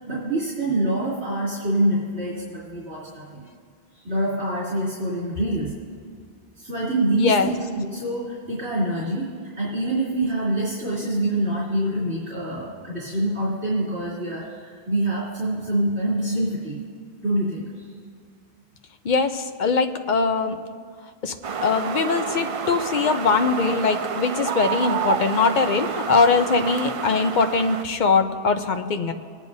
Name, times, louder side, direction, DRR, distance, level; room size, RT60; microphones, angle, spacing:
voice 1, 0.1-3.4 3.9-5.7 6.6-9.3 9.6-16.8 17.2-17.9, right 1 dB, 80° right, -9 dB, 3.4 m, -25 dB
voice 2, 7.1-7.5 19.0-20.6 21.2-21.3 21.6-29.1, left 4 dB, 50° left, 7 dB, 0.8 m, -21 dB
sound 1, 21.4-27.8, right 6 dB, 60° right, 0.3 m, -29 dB
22.0 x 9.9 x 2.7 m, 2.1 s
omnidirectional pair, 1.1 m